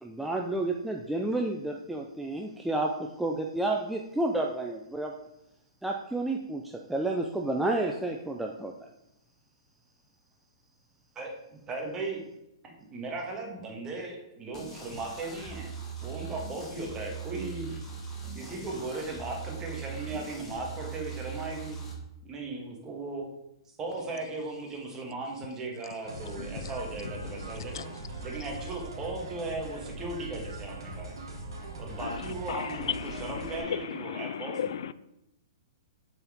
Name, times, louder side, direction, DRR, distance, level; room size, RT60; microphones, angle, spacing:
voice 1, 0.0-2.9 3.2-5.1 5.8-8.7, right 2 dB, 5° right, 0 dB, 0.5 m, -30 dB
voice 2, 11.1-12.2 12.9-15.7 16.0-17.8 18.3-21.8 22.2-23.2 23.8-27.8 28.2-31.2 31.8-34.8, right 3 dB, 20° right, 0 dB, 1.6 m, -37 dB
sound 1, 14.5-21.9, right 5 dB, 20° left, 1.5 m, -40 dB
sound 2, 26.1-33.6, right 2 dB, 80° right, 2.0 m, -41 dB
voice 3, 26.4-26.7 27.3-27.4 27.7-27.8 32.0-32.2 32.5-34.9, left 9 dB, 70° left, 16 dB, 0.3 m, -35 dB
6.7 x 4.5 x 3.6 m, 0.85 s
hypercardioid pair, 125°, 2 cm